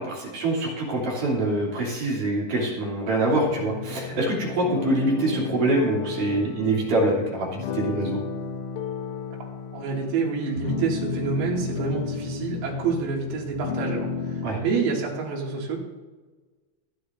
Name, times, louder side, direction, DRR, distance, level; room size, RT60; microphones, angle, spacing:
voice 1, 0.0-8.2 14.4-14.6, right 1 dB, 45° right, -4 dB, 4.0 m, -25 dB
sound 1, 3.4-14.5, left 6 dB, 80° left, 3.5 m, -33 dB
voice 2, 9.7-15.8, right 5 dB, 85° right, -2 dB, 5.0 m, -27 dB
25.0 x 9.6 x 2.6 m, 1.3 s
omnidirectional pair, 5.9 m